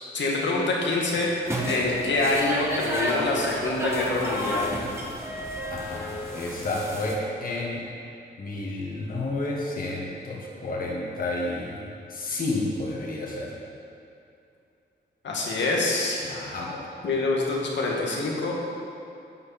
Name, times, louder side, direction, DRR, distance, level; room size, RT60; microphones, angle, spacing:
voice 1, 0.1-1.3 1.7-4.6 15.2-16.2 17.0-18.5, left 2 dB, 85° left, -2 dB, 2.0 m, -25 dB
sound 1, 1.4-7.1, equal, 15° right, 1.4 m, -31 dB
voice 2, 5.7-7.9 8.4-11.8 12.1-13.6 16.2-16.9, left 2 dB, 50° left, -3 dB, 1.7 m, -31 dB
11.0 x 9.8 x 4.3 m, 2.6 s
wide cardioid pair, 155°, 18 cm